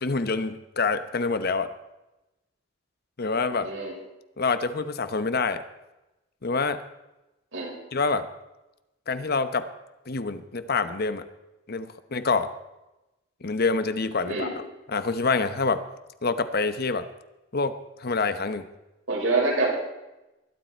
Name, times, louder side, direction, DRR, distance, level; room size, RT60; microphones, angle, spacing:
voice 1, 0.0-1.7 3.2-3.7 4.4-5.6 6.4-6.8 7.9-8.3 9.1-9.7 10.1-11.2 11.7-12.5 13.4-14.6 14.9-15.8 16.2-17.1 17.5-18.7, left 4 dB, 55° left, 11 dB, 1.0 m, -26 dB
voice 2, 3.6-3.9 7.5-7.8 14.3-14.5 19.1-19.7, right 3 dB, 85° right, -3 dB, 5.8 m, -26 dB
21.0 x 12.0 x 4.5 m, 1.0 s
head